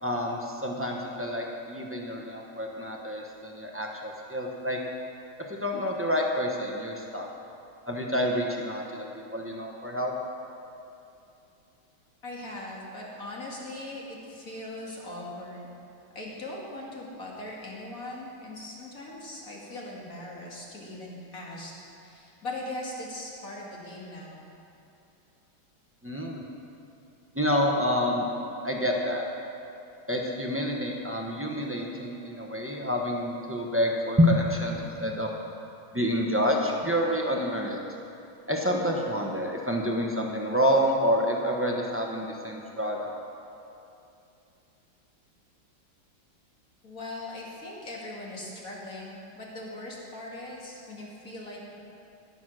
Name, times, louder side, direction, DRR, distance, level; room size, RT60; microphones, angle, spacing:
voice 1, 0.0-4.8 5.5-7.3 7.9-10.1 26.0-26.4 27.3-28.3 28.6-29.2 30.1-35.3 35.9-37.8 38.5-43.2, equal, 15° right, -1 dB, 0.4 m, -28 dB
voice 2, 12.2-15.7 16.2-21.7 22.0-24.5 46.8-51.7, left 1 dB, 45° left, -3 dB, 2.4 m, -40 dB
16.5 x 7.1 x 6.2 m, 2.8 s
omnidirectional pair, 2.2 m